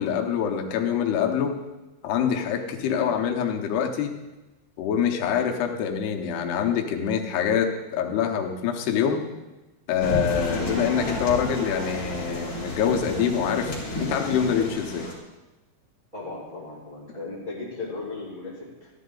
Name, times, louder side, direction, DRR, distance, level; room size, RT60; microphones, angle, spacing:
voice 1, 0.0-1.6 2.0-4.1 4.8-9.2 9.9-15.1, left 8 dB, 85° left, 3 dB, 3.0 m, -25 dB
voice 2, 2.8-3.1 10.5-10.8 16.1-18.9, left 3 dB, 15° right, -7 dB, 2.1 m, -36 dB
sound 1, 10.0-15.1, left 1 dB, 40° left, 3.0 m, -31 dB
14.0 x 11.5 x 3.9 m, 1.1 s
omnidirectional pair, 4.6 m